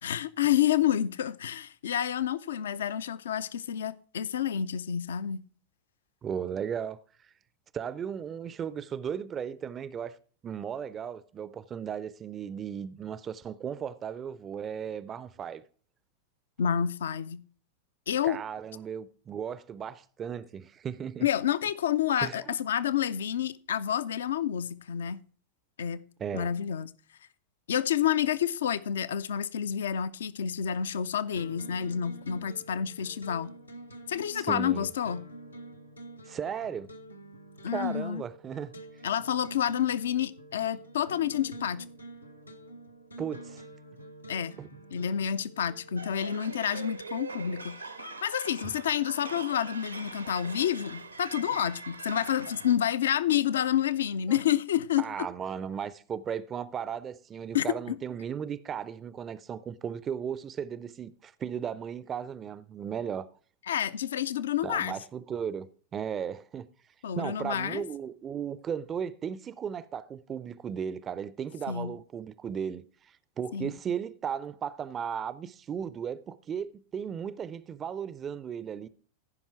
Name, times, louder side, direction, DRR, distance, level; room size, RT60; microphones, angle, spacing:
voice 1, 0.0-5.4 16.6-17.4 18.1-18.4 21.2-25.2 25.8-26.0 26.3-26.9 27.7-33.5 34.1-35.3 37.6-38.2 39.0-41.9 44.3-44.5 44.9-47.8 48.2-55.1 57.5-58.0 63.7-65.0 67.0-67.8 71.7-71.9 73.5-73.7, left 9 dB, 65° left, 0.4 m, -29 dB
voice 2, 6.2-7.0 7.7-10.2 10.4-15.6 18.2-21.3 22.2-22.5 26.2-26.5 34.3-34.9 36.3-36.9 37.7-38.7 43.2-43.6 44.6-44.7 54.3-54.4 55.0-63.3 64.6-66.7 67.1-78.9, right 8 dB, 25° right, 0.4 m, -36 dB
sound 1, 31.4-46.1, right 2 dB, 85° left, 1.0 m, -47 dB
sound 2, 46.0-52.8, right 3 dB, 85° right, 0.9 m, -42 dB
14.5 x 5.5 x 4.5 m
figure-of-eight pair, 90°, 0 cm